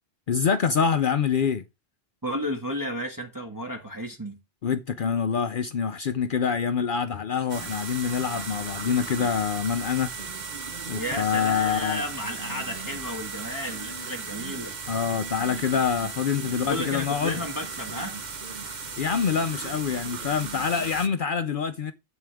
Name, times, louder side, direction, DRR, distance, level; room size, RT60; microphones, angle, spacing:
voice 1, 0.3-1.6 4.6-10.1 10.9-12.0 14.9-17.4 19.0-21.9, left 6 dB, 60° left, 0.8 m, -26 dB
voice 2, 2.2-4.4 10.9-14.8 16.5-18.2, left 1 dB, 20° right, 1.6 m, -32 dB
sound 1, 7.5-21.1, right 5 dB, 50° right, 1.1 m, -36 dB
11.0 x 8.3 x 3.5 m
omnidirectional pair, 1.0 m